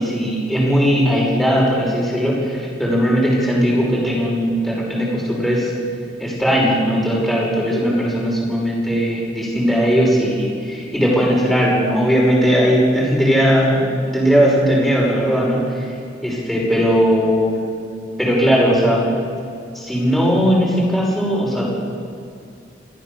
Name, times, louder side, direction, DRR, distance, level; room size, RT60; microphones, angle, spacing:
voice 1, 0.0-5.7 6.2-15.9 16.2-17.6 18.2-19.0 19.7-21.7, equal, ahead, -4 dB, 5.8 m, -18 dB
28.5 x 14.5 x 7.0 m, 2.4 s
head